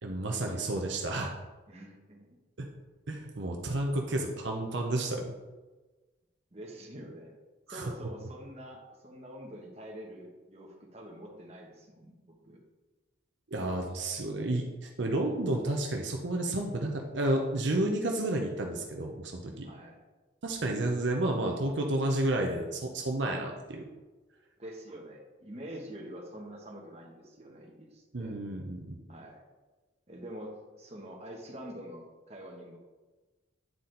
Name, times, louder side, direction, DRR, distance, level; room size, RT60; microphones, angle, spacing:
voice 1, 0.0-1.3 2.6-2.7 3.1-5.3 7.7-7.9 13.5-19.7 20.4-23.8 28.1-29.0, right 1 dB, 70° right, 1 dB, 0.8 m, -31 dB
voice 2, 1.7-2.4 6.5-7.4 7.7-12.6 19.6-20.0 24.6-28.4 29.1-29.4 30.1-32.8, equal, 35° right, 0 dB, 1.2 m, -46 dB
9.3 x 4.2 x 3.9 m, 1.2 s
head